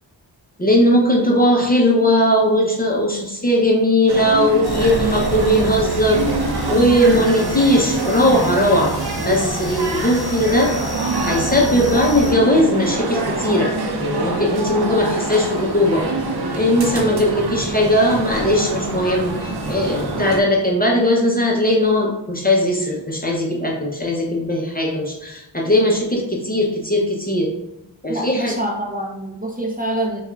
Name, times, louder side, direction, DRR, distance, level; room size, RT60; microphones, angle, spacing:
voice 1, 0.6-6.2 6.7-10.7 11.3-13.7 14.0-16.0 16.5-27.5 28.0-28.6, left 1 dB, 20° left, -2 dB, 0.6 m, -18 dB
sound 1, 4.1-20.4, right 2 dB, 60° right, 0.6 m, -25 dB
sound 2, 4.6-12.3, equal, 60° left, 0.7 m, -30 dB
voice 2, 28.1-30.2, right 1 dB, 20° right, -2 dB, 0.6 m, -26 dB
4.6 x 2.3 x 2.3 m, 0.89 s
wide cardioid pair, 75°, 43 cm